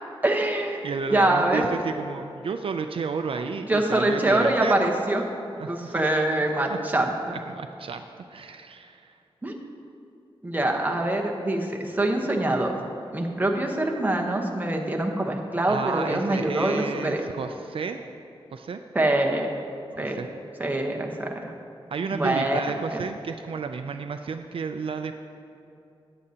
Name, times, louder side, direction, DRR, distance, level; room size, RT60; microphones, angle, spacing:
voice 1, 0.2-1.6 3.7-5.2 5.7-7.4 9.4-9.5 10.4-12.7 13.1-17.2 18.9-19.5 20.0-20.2 20.6-21.5 22.1-22.6 22.9-23.0, right 1 dB, 15° right, 1 dB, 1.0 m, -24 dB
voice 2, 0.8-4.9 5.2-5.3 5.6-6.0 6.4-6.8 7.3-8.0 8.3-9.2 15.7-18.0 18.5-18.8 19.9-20.3 21.9-25.1, right 5 dB, 65° right, 7 dB, 0.4 m, -32 dB
14.0 x 9.7 x 2.8 m, 2.7 s
wide cardioid pair, 130°, 10 cm